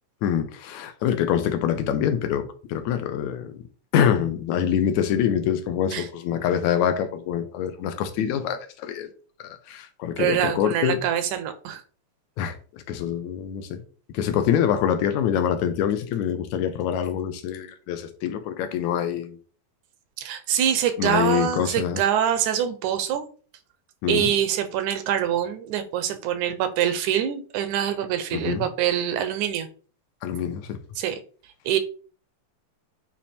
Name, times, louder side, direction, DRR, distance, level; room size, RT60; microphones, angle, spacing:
voice 1, 0.2-3.7 3.9-9.1 9.4-11.0 12.4-13.8 14.1-19.4 21.0-22.0 24.0-24.3 28.3-28.7 30.2-30.8, left 9 dB, 75° left, 2.1 m, -25 dB
voice 2, 10.2-11.8 20.2-23.3 24.1-29.7 31.0-31.2 31.7-31.8, right 10 dB, 80° right, 2.2 m, -25 dB
8.9 x 3.0 x 4.3 m
omnidirectional pair, 3.4 m